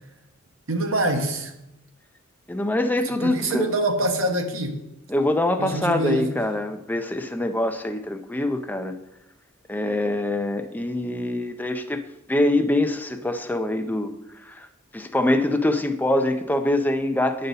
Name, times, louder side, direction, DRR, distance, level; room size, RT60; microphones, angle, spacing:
voice 1, 0.7-1.5 3.2-4.8 5.6-6.3, right 1 dB, 70° right, 4 dB, 1.1 m, -25 dB
voice 2, 2.5-3.7 5.1-8.9 9.7-12.0 12.3-14.1 14.4-14.7 14.9-17.5, left 1 dB, 10° left, 6 dB, 0.5 m, -24 dB
9.1 x 5.4 x 4.1 m, 0.90 s
head